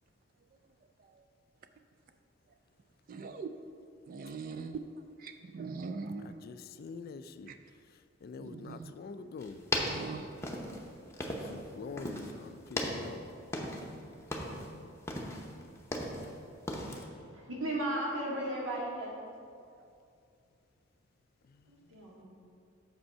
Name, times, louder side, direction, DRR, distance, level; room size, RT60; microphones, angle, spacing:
voice 1, 3.1-3.5 4.1-4.8 5.2-6.4 7.5-7.6 8.4-8.9 9.8-10.3, right 4 dB, 50° right, 8 dB, 0.3 m, -41 dB
voice 2, 6.2-7.5 8.2-9.6 11.5-13.2 14.4-14.9, left 4 dB, 50° left, 11 dB, 0.3 m, -45 dB
sound 1, 9.4-11.7 12.0-12.4 12.7-14.0 14.2-14.7 15.1-16.3 16.7-17.0, left 1 dB, 15° left, 0.8 m, -36 dB
voice 3, 17.3-19.1 21.9-22.2, right 1 dB, 85° right, -4 dB, 2.0 m, -35 dB
6.8 x 5.3 x 5.5 m, 2.4 s
head